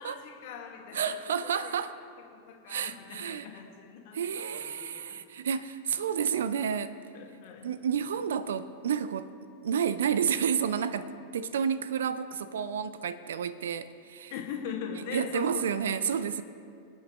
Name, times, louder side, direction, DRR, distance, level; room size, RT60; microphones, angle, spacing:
voice 1, 0.0-1.7 2.2-5.2 7.1-7.7 14.3-15.9 16.3-16.4, left 7 dB, 50° left, 1 dB, 1.9 m, -41 dB
voice 2, 0.9-1.9 2.7-3.5 4.1-7.0 7.6-9.3 9.6-14.3 15.1-16.4, right 7 dB, 65° right, 14 dB, 0.5 m, -30 dB
26.0 x 8.8 x 3.2 m, 2.5 s
figure-of-eight pair, 90°, 0 cm